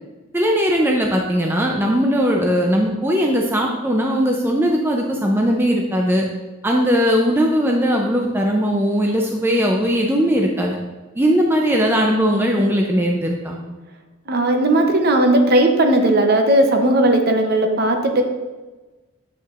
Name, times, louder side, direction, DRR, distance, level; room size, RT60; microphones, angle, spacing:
voice 1, 0.3-6.2 6.6-10.8 11.2-13.6, equal, 10° right, 0 dB, 0.4 m, -19 dB
voice 2, 14.3-18.2, right 1 dB, 45° right, 4 dB, 0.7 m, -16 dB
8.3 x 5.5 x 2.4 m, 1.2 s
head